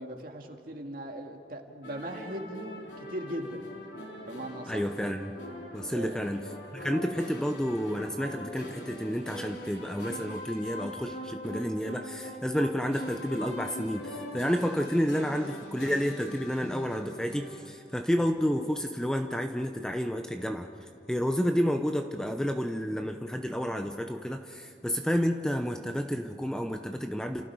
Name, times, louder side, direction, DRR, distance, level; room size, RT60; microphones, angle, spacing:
voice 1, 0.0-3.6 4.2-4.9 5.9-6.2, right 1 dB, 55° right, 3 dB, 2.1 m, -39 dB
sound 1, 1.8-17.6, left 1 dB, 90° left, 3.8 m, -42 dB
voice 2, 4.7-5.3 5.7-20.7 21.1-27.4, equal, 5° left, 5 dB, 0.7 m, -30 dB
30.0 x 28.0 x 4.8 m, 2.9 s
head